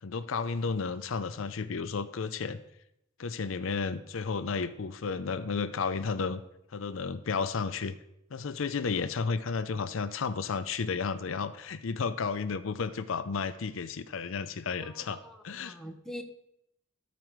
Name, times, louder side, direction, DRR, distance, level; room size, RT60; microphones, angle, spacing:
voice 1, 0.0-2.6 3.2-6.4 6.7-7.9 8.3-15.8, left 5 dB, 75° left, 12 dB, 0.5 m, -32 dB
voice 2, 14.8-16.2, equal, ahead, 3 dB, 0.8 m, -44 dB
13.5 x 5.1 x 4.6 m, 0.81 s
head